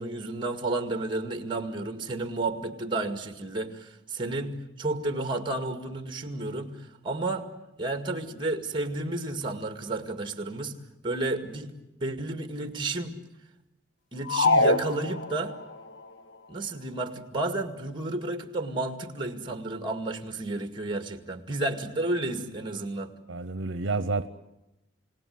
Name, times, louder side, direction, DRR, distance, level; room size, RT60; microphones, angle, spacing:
voice 1, 0.0-6.8 7.0-7.5 7.8-10.7 11.0-11.7 12.0-13.1 14.1-15.5 16.5-23.1, right 2 dB, 25° right, 9 dB, 2.1 m, -31 dB
sound 1, 14.3-15.7, left 2 dB, 70° left, 1.1 m, -24 dB
voice 2, 23.3-24.3, right 3 dB, 70° right, 13 dB, 0.9 m, -29 dB
29.0 x 18.0 x 9.5 m, 0.96 s
head